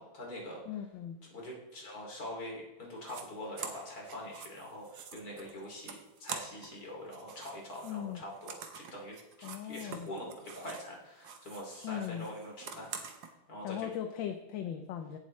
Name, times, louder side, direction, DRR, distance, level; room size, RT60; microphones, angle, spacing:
voice 1, 0.0-0.6 1.3-13.2 13.5-13.9, left 1 dB, 45° left, -2 dB, 3.3 m, -44 dB
voice 2, 0.7-1.2 7.8-8.2 9.4-10.1 11.8-12.3 13.6-15.2, left 10 dB, 75° left, 6 dB, 1.4 m, -38 dB
sound 1, 3.0-3.2 3.6-6.8 7.1-10.9 11.2-13.3, right 6 dB, 65° right, 1.7 m, -46 dB
16.5 x 7.7 x 3.2 m, 0.98 s
omnidirectional pair, 2.2 m